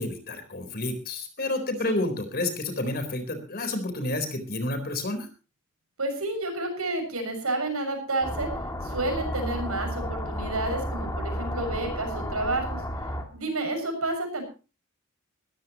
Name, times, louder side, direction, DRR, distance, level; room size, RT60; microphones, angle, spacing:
voice 1, 0.0-5.3, left 2 dB, 45° left, 9 dB, 4.2 m, -30 dB
voice 2, 6.0-8.5 8.8-12.8 13.3-14.4, right 2 dB, 90° right, 5 dB, 6.8 m, -30 dB
sound 1, 8.2-13.2, equal, 15° left, 2.4 m, -32 dB
20.5 x 14.5 x 3.0 m, 0.34 s
head